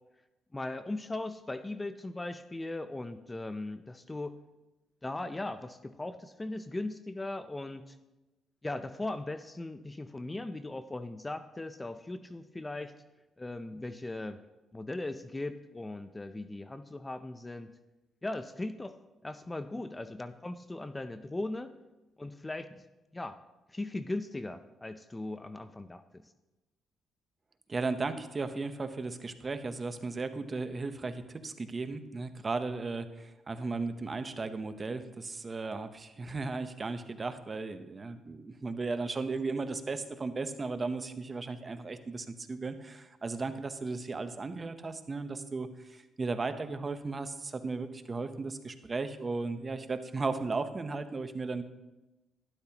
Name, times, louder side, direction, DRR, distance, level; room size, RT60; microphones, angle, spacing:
voice 1, 0.5-4.3 5.0-8.0 8.6-12.9 13.4-14.4 14.7-17.7 18.2-21.7 22.2-22.8 23.1-23.4 23.7-26.0, left 2 dB, 15° left, 11 dB, 0.5 m, -38 dB
voice 2, 27.7-51.6, right 3 dB, 30° right, 10 dB, 0.8 m, -36 dB
12.0 x 11.5 x 2.9 m, 1.0 s
cardioid pair, 90°, 0 cm